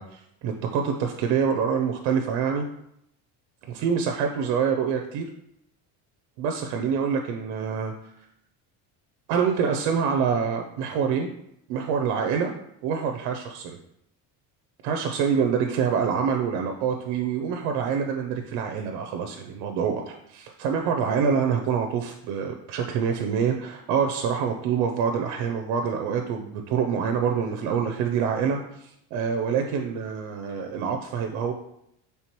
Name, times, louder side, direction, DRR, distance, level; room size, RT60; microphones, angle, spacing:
voice 1, 0.0-2.7 3.7-5.3 6.4-7.9 9.3-11.3 11.7-12.5 12.8-13.8 14.8-31.5, right 6 dB, 80° right, 4 dB, 0.6 m, -26 dB
4.3 x 3.4 x 3.0 m, 0.77 s
cardioid pair, 125°, 40 cm